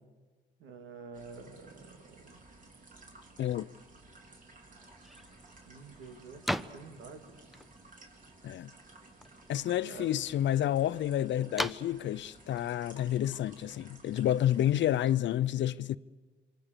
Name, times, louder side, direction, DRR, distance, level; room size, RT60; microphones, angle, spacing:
voice 1, 0.6-2.4 5.6-7.6 9.8-10.2, right 5 dB, 85° right, 3.0 m, -49 dB
sound 1, 1.1-15.1, right 2 dB, 40° right, 4.4 m, -55 dB
sound 2, 4.8-14.0, equal, ahead, 0.8 m, -43 dB
voice 2, 9.5-16.0, left 12 dB, 65° left, 0.7 m, -29 dB
27.0 x 24.5 x 6.8 m
cardioid pair, 90°, 20 cm